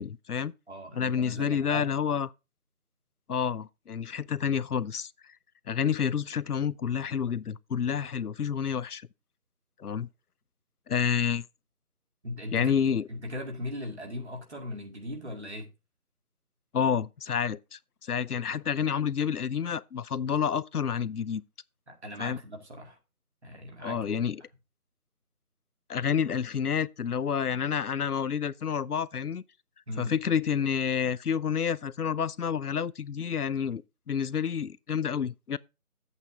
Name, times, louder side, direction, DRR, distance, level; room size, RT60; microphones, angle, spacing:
voice 1, 0.0-0.5 0.9-2.3 3.3-5.1 5.7-9.1 9.8-10.1 10.9-11.4 12.5-13.1 16.7-21.4 22.2-22.4 23.8-24.4 25.9-29.4 30.0-35.6, left 7 dB, 80° left, 0.6 m, -29 dB
voice 2, 0.7-1.9 12.2-15.7 21.9-23.0 23.4-24.1 29.9-30.1, left 1 dB, 45° right, 2.1 m, -39 dB
9.1 x 8.1 x 3.6 m
figure-of-eight pair, 170°, 45 cm